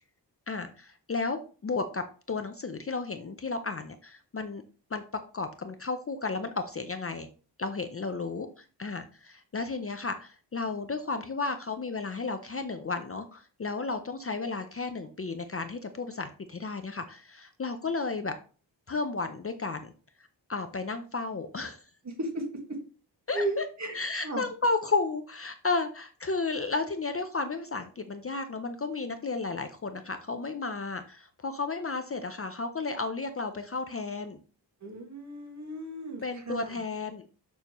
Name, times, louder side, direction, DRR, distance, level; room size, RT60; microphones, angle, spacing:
voice 1, 0.5-4.6 4.9-5.0 5.3-7.3 7.6-18.3 18.9-19.9 20.5-21.8 23.3-23.4 23.9-34.4 36.2-37.3, left 3 dB, 30° left, 8 dB, 0.5 m, -33 dB
voice 2, 22.0-22.8 23.3-24.5 34.8-36.8, right 1 dB, 40° right, 2 dB, 1.8 m, -35 dB
6.8 x 6.6 x 3.0 m, 0.38 s
wide cardioid pair, 155°, 43 cm